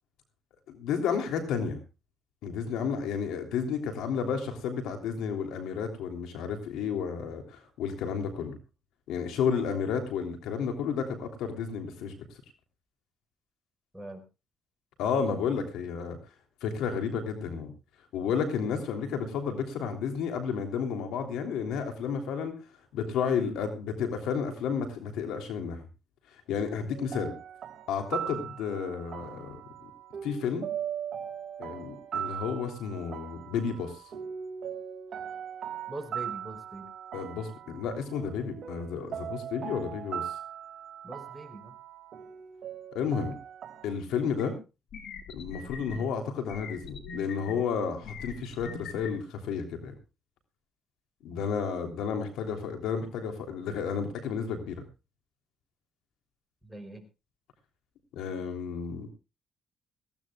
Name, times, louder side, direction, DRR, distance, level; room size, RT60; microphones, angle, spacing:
voice 1, 0.7-1.8 2.4-8.6 9.1-12.1 15.0-16.2 16.6-17.7 18.1-22.5 22.9-25.8 26.5-27.3 27.9-29.6 30.2-30.7 31.6-33.9 37.1-40.3 42.9-43.3 43.8-44.5 45.3-49.9 51.2-54.8 58.1-59.1, left 6 dB, 90° left, 6 dB, 3.2 m, -32 dB
sound 1, 26.9-43.9, right 9 dB, 60° right, 2.3 m, -39 dB
voice 2, 35.9-36.9 41.0-41.7 56.6-57.0, right 1 dB, 5° right, 4 dB, 5.2 m, -42 dB
sound 2, 44.4-44.5 44.9-46.0 46.5-47.5 48.0-49.1, left 5 dB, 70° left, 3.6 m, -41 dB
21.5 x 16.0 x 2.3 m, 0.30 s
cardioid pair, 90°, 0 cm